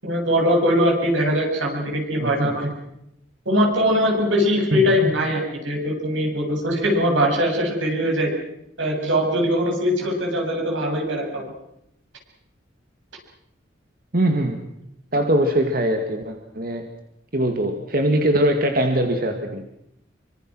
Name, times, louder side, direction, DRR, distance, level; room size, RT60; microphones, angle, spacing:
voice 1, 0.0-2.7 3.4-8.3 8.8-11.4, equal, 90° right, 1 dB, 7.9 m, -21 dB
voice 2, 2.2-2.5 4.7-4.8 14.1-14.6 15.1-16.8 17.3-19.7, right 1 dB, 50° right, 4 dB, 2.2 m, -21 dB
27.5 x 25.0 x 6.3 m, 0.81 s
head